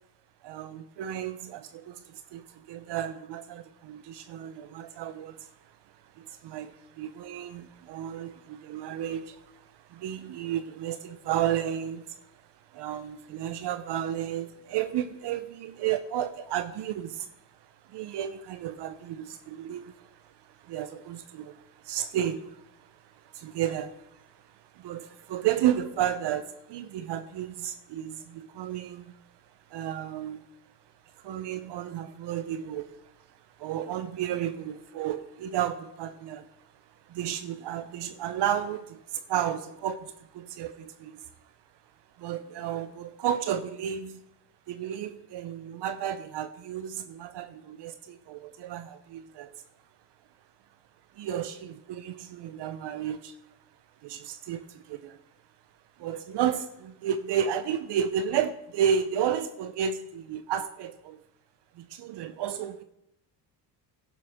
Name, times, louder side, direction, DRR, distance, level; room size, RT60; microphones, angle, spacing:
voice 1, 0.4-2.0 2.3-5.4 6.2-9.4 9.9-12.0 12.7-17.3 17.9-19.9 20.7-22.6 23.3-23.9 24.8-29.1 29.7-30.4 31.2-32.9 33.6-36.4 37.1-41.2 42.2-44.2 44.7-49.5 51.2-53.3 54.0-55.2 56.0-61.2 61.8-62.8, right 9 dB, 65° right, 11 dB, 0.8 m, -32 dB
12.0 x 11.5 x 3.6 m, 0.83 s
supercardioid pair, 70°, 45 cm